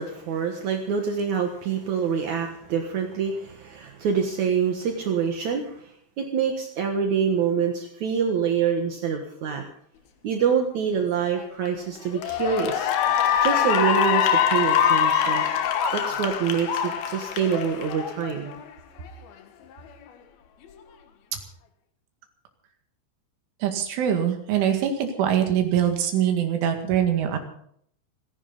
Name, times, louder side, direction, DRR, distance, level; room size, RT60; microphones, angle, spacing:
voice 1, 0.0-5.9 6.2-9.6 10.2-12.9 13.4-15.4 15.9-18.6, right 7 dB, 70° right, 3 dB, 1.8 m, -26 dB
Cheering / Applause, 11.4-11.7 12.1-18.6, left 8 dB, 65° left, 2.8 m, -23 dB
voice 2, 23.6-27.4, right 9 dB, 85° right, 5 dB, 4.5 m, -23 dB
30.0 x 11.0 x 4.0 m, 0.65 s
omnidirectional pair, 5.4 m